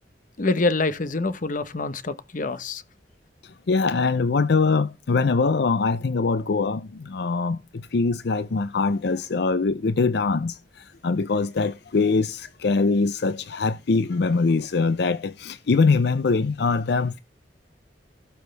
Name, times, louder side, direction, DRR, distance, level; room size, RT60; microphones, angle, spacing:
voice 1, 0.4-2.8, left 3 dB, 50° left, 1.0 m, -25 dB
voice 2, 3.4-17.2, left 4 dB, 65° left, 0.5 m, -23 dB
17.5 x 6.4 x 3.3 m
head